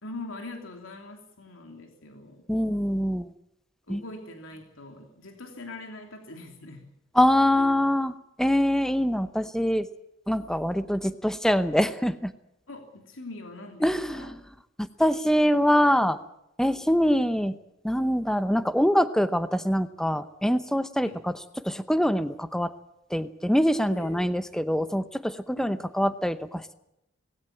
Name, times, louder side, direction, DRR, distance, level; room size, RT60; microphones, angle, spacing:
voice 1, 0.0-2.4 3.9-6.8 7.6-7.7 12.7-14.3 21.0-21.2 23.9-24.4 25.6-25.8, left 2 dB, 85° left, 4 dB, 3.2 m, -42 dB
voice 2, 2.5-3.3 3.9-4.0 7.1-8.1 8.4-9.9 10.3-12.3 13.8-14.3 14.8-16.2 16.6-17.6 17.8-21.3 21.6-22.7 23.1-26.7, equal, 5° left, 12 dB, 0.8 m, -24 dB
19.5 x 17.0 x 8.9 m, 0.82 s
head